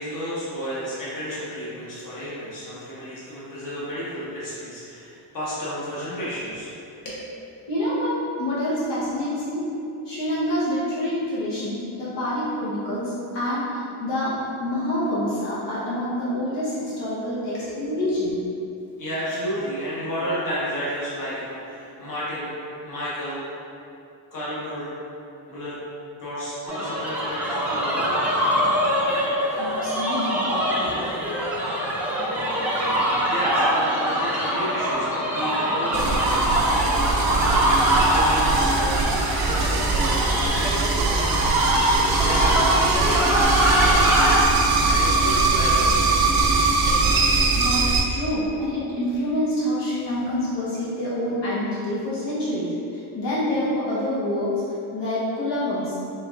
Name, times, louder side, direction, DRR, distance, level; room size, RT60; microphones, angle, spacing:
voice 1, 0.0-6.7 7.0-7.3 17.5-17.9 19.0-22.5 22.8-23.4 24.3-24.9 25.5-25.8 26.2-28.2 33.3-46.0 46.9-47.1, equal, 45° left, -9 dB, 1.3 m, -32 dB
voice 2, 7.7-9.7 10.0-18.4 29.2-29.3 29.6-30.9 47.5-54.5 54.9-55.9, left 1 dB, 70° left, -9 dB, 1.2 m, -27 dB
sound 1, 26.7-44.4, right 1 dB, 5° right, 0.5 m, -23 dB
sound 2, 35.9-48.0, right 3 dB, 55° right, 0.6 m, -22 dB
4.5 x 3.4 x 2.5 m, 2.7 s
cardioid pair, 140°, 44 cm